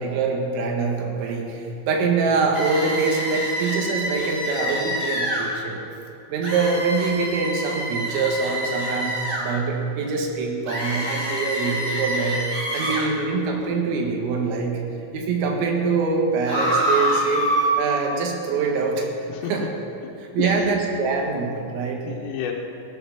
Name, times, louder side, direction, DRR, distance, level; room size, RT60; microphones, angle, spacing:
voice 1, 0.0-5.8 6.3-12.4 12.7-14.8 15.1-17.5 17.8-19.7 20.2-22.1, right 4 dB, 85° right, 1 dB, 4.1 m, -24 dB
sound 1, 2.5-5.5 6.4-9.4 10.7-13.1 16.5-17.7, equal, 20° right, 2.7 m, -26 dB
voice 2, 19.3-20.1 20.4-20.7 22.0-22.5, left 9 dB, 85° left, -3 dB, 3.5 m, -31 dB
16.5 x 9.9 x 5.9 m, 2.7 s
omnidirectional pair, 5.8 m